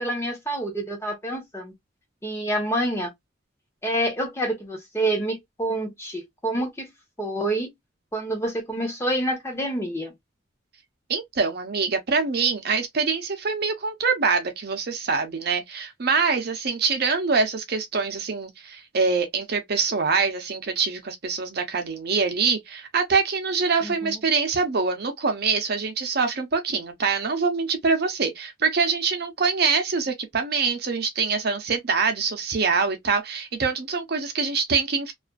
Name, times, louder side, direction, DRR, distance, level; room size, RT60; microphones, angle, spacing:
voice 1, 0.0-1.7 2.2-3.1 3.8-6.9 7.2-7.7 8.1-10.1 23.8-24.2, right 1 dB, 15° left, 0.9 m, -27 dB
voice 2, 11.1-35.1, right 5 dB, 55° right, 0.6 m, -24 dB
2.5 x 2.3 x 2.3 m
head